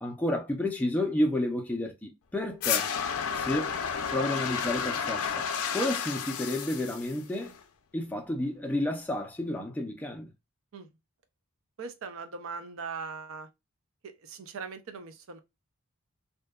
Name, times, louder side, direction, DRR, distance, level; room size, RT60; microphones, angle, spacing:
voice 1, 0.0-2.9 3.3-3.7 4.1-7.5 7.9-10.3, left 1 dB, 5° left, 0.4 m, -31 dB
sound 1, 2.6-7.6, left 7 dB, 75° left, 0.4 m, -31 dB
voice 2, 11.8-13.5 14.0-15.4, right 5 dB, 65° right, 0.4 m, -40 dB
2.6 x 2.2 x 2.2 m
head